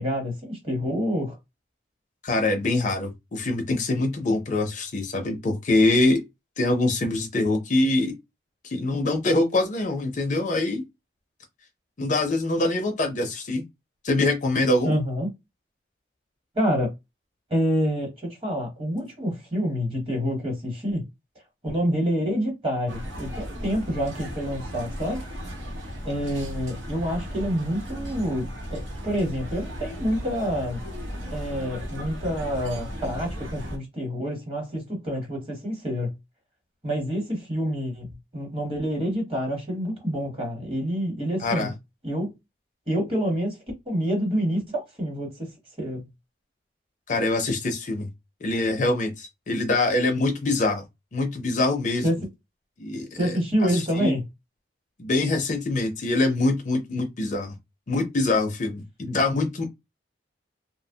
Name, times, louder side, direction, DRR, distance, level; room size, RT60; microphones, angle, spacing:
voice 1, 0.0-1.4 14.8-15.3 16.5-16.9 17.5-21.0 21.6-25.2 26.0-30.8 31.3-36.1 36.8-38.1 38.3-41.7 42.0-42.3 42.9-43.6 43.9-45.5 45.8-46.0 52.0-52.2 53.2-54.2, equal, 30° right, 1.0 m, -27 dB
voice 2, 2.2-6.2 6.6-8.1 8.6-10.8 12.0-13.6 14.0-14.9 41.4-41.7 47.1-48.1 48.4-50.8 51.1-52.0 52.8-53.3 53.6-54.1 55.0-57.5 57.9-59.7, left 2 dB, 40° left, 0.4 m, -24 dB
sound 1, 22.9-33.8, equal, 90° right, 0.8 m, -36 dB
2.7 x 2.0 x 2.7 m
head